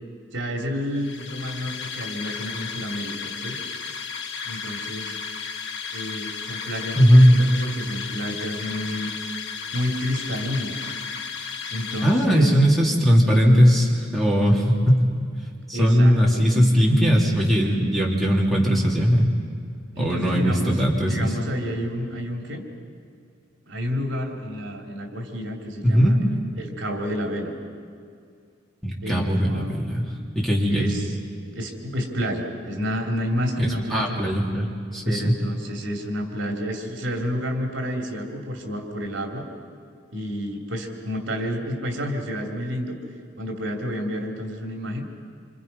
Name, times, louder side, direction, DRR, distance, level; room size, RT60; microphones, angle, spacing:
voice 1, 0.3-3.6 4.4-5.2 5.9-9.1 9.7-10.9 11.7-12.5 15.7-16.5 19.9-22.6 23.7-26.2 26.6-27.5 29.0-29.8 30.7-31.2 31.5-34.2 35.0-39.4 40.1-43.0 43.4-45.0, equal, 70° right, 2 dB, 2.9 m, -30 dB
sound 1, 0.9-12.7, left 6 dB, 65° left, 1.3 m, -34 dB
voice 2, 6.9-7.3 12.0-15.1 15.7-19.3 20.0-21.3 25.8-26.2 28.8-30.0 30.3-30.9 33.6-35.3, equal, ahead, -4 dB, 3.1 m, -19 dB
27.0 x 26.5 x 5.5 m, 2.3 s
head